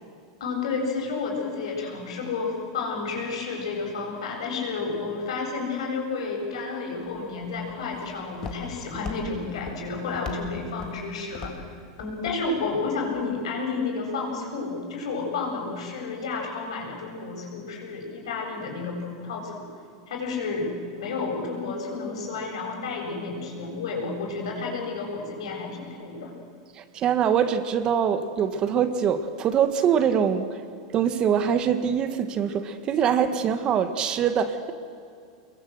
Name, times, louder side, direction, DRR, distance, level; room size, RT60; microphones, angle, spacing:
voice 1, 0.4-11.6 12.0-19.7 20.1-26.3, left 4 dB, 90° left, 7.8 m, -31 dB
Walk footsteps, 7.0-13.2, left 4 dB, 20° left, 1.9 m, -42 dB
voice 2, 26.8-30.6 30.9-34.7, right 8 dB, 30° right, 1.4 m, -23 dB
27.0 x 22.0 x 7.9 m
supercardioid pair, 155°, 3 cm